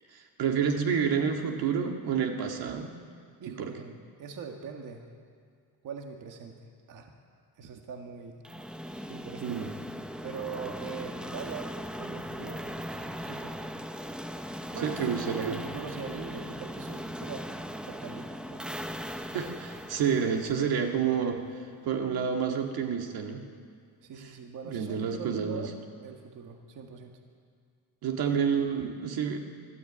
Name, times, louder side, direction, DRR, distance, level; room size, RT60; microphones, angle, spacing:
voice 1, 0.1-2.9 3.5-3.7 9.4-9.7 14.8-15.6 19.3-21.5 21.9-23.4 24.7-25.7 28.0-29.4, right 7 dB, 70° right, 3 dB, 1.9 m, -29 dB
voice 2, 3.4-5.1 5.8-6.6 6.9-7.1 7.6-8.4 9.1-9.7 10.2-11.7 12.0-12.6 13.2-13.6 14.7-17.5 17.9-18.6 24.0-25.7 26.0-27.2, right 6 dB, 55° right, 3 dB, 1.8 m, -41 dB
sound 1, 8.4-21.3, equal, ahead, 0.7 m, -39 dB
23.0 x 13.0 x 8.7 m, 2.1 s
cardioid pair, 155°, 38 cm